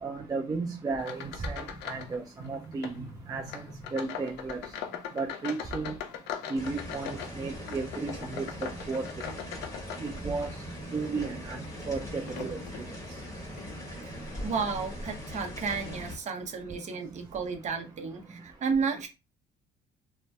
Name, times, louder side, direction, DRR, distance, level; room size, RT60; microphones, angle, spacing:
voice 1, 0.0-3.0 3.3-3.4 3.9-4.6 5.2-5.9 6.5-8.5 8.9-9.0 10.0-10.5 10.9-11.6 11.9-12.6, right 4 dB, 20° right, 1 dB, 0.4 m, -33 dB
sound 1, 1.0-2.2 2.4-3.0 3.5-10.5 11.1-12.9 13.5-13.7 14.3-14.4 15.3-15.4 15.7-15.9, left 8 dB, 80° left, 0.5 m, -41 dB
voice 2, 1.7-2.1 2.4-3.1 3.4-4.0 14.0-14.1 14.4-19.1, right 5 dB, 45° right, 4 dB, 0.8 m, -33 dB
sound 2, 6.6-16.2, equal, 20° left, 1.4 m, -41 dB
2.5 x 2.2 x 3.3 m, 0.27 s
cardioid pair, 110°, 17 cm